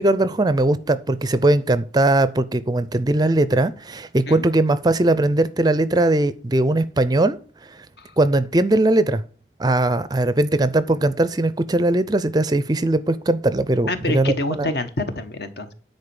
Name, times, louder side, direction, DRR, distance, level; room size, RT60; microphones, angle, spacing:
voice 1, 0.0-7.4 8.2-9.2 9.6-14.7, right 2 dB, 20° right, 15 dB, 0.5 m, -19 dB
voice 2, 13.9-15.7, left 2 dB, 60° left, 9 dB, 1.2 m, -27 dB
10.0 x 4.3 x 6.8 m, 0.40 s
head